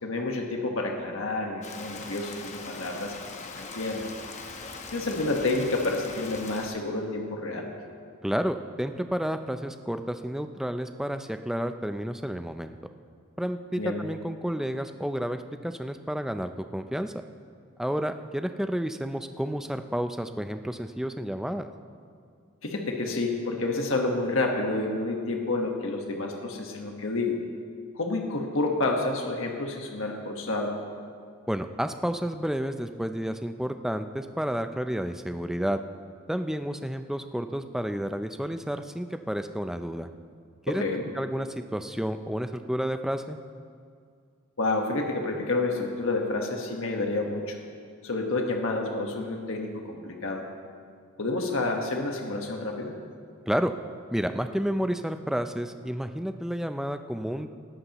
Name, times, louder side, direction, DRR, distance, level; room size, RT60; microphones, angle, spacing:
voice 1, 0.0-3.1 3.5-4.1 4.9-7.7 13.7-14.0 22.6-27.4 27.9-30.7 40.7-41.0 44.6-47.6 48.0-50.4 51.2-52.9, left 2 dB, 65° left, 2 dB, 1.3 m, -29 dB
Rain, 1.6-6.7, left 4 dB, 35° left, 0.9 m, -41 dB
voice 2, 8.2-12.8 13.4-17.1 17.8-21.7 31.5-35.8 36.3-40.1 40.7-40.8 41.2-43.4 53.5-53.7 54.1-57.5, equal, ahead, 8 dB, 0.4 m, -30 dB
19.5 x 13.5 x 3.0 m, 2.2 s
head